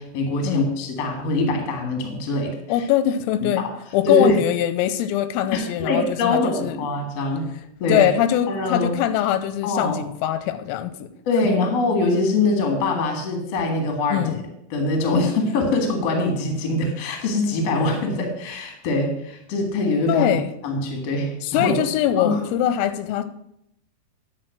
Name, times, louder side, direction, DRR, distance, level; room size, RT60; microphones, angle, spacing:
voice 1, 0.0-2.5 3.6-3.7 4.0-4.4 5.5-7.5 7.8-8.1 8.5-8.9 9.6-10.0 11.2-14.2 14.7-21.8 22.1-22.4, left 2 dB, 60° left, 3 dB, 1.6 m, -23 dB
voice 2, 2.7-3.6 3.9-6.9 7.9-11.1 14.1-14.4 20.1-20.5 21.4-23.2, left 11 dB, 90° left, 12 dB, 3.3 m, -22 dB
10.5 x 4.4 x 6.5 m, 0.76 s
omnidirectional pair, 5.9 m